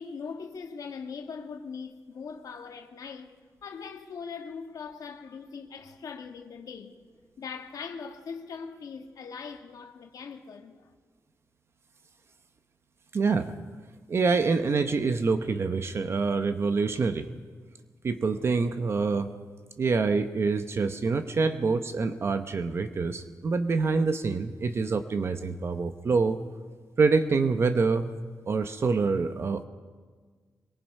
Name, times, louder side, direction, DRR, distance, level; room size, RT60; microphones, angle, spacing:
voice 1, 0.0-3.3 3.6-7.0 7.4-10.9, left 5 dB, 70° left, 1.6 m, -41 dB
voice 2, 13.1-13.6 14.1-17.3 18.0-19.3 19.8-26.4 27.0-28.1 28.5-29.6, right 4 dB, 40° right, 0.9 m, -26 dB
23.0 x 22.5 x 5.5 m
wide cardioid pair, 160°, 6 cm